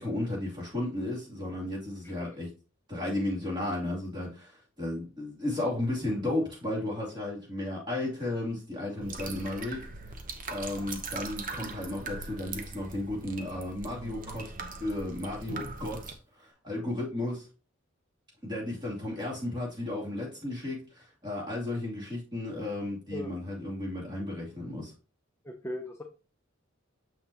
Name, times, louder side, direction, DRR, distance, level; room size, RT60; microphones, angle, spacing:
voice 1, 0.0-2.5 2.9-9.8 10.5-14.5 14.8-17.5 18.4-24.9, left 1 dB, 20° right, 2.8 m, -34 dB
sound 1, 9.0-16.1, right 3 dB, 45° right, 0.9 m, -40 dB
voice 2, 25.4-26.0, left 1 dB, 15° left, 0.6 m, -38 dB
7.2 x 5.8 x 2.9 m
head